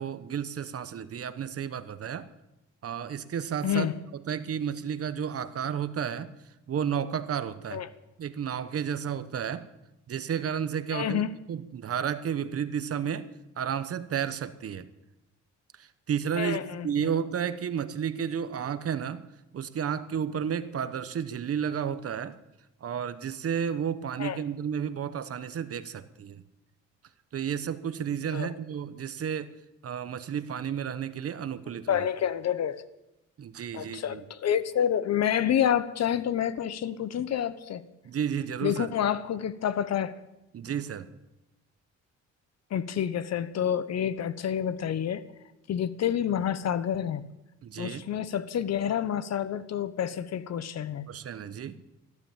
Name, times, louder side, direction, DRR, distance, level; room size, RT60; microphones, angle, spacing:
voice 1, 0.0-2.3 2.8-3.9 4.1-6.3 6.7-7.8 8.2-9.6 10.1-11.2 11.5-13.3 13.6-14.9 15.8-19.2 19.5-22.4 22.8-26.4 27.3-29.5 29.8-32.1 33.4-34.2 38.0-38.9 40.5-41.1 47.6-48.0 51.1-51.8, right 8 dB, 50° right, 13 dB, 1.0 m, -32 dB
voice 2, 3.6-3.9 7.7-7.9 10.9-11.3 16.4-17.1 24.2-24.4 28.3-28.5 31.9-32.8 33.7-37.8 38.6-40.1 42.7-45.2 45.7-47.2 47.8-51.1, left 9 dB, 60° left, 15 dB, 1.0 m, -28 dB
15.0 x 12.0 x 7.3 m, 0.94 s
cardioid pair, 90°, 30 cm